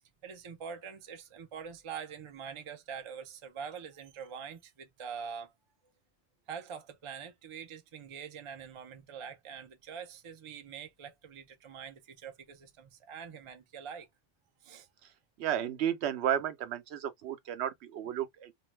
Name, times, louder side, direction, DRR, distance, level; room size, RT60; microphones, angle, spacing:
voice 1, 0.0-5.5 6.5-14.1 14.6-14.9, right 7 dB, 50° right, 0.3 m, -44 dB
voice 2, 15.4-18.5, right 10 dB, 70° right, 0.8 m, -33 dB
2.5 x 2.2 x 3.1 m
omnidirectional pair, 1.2 m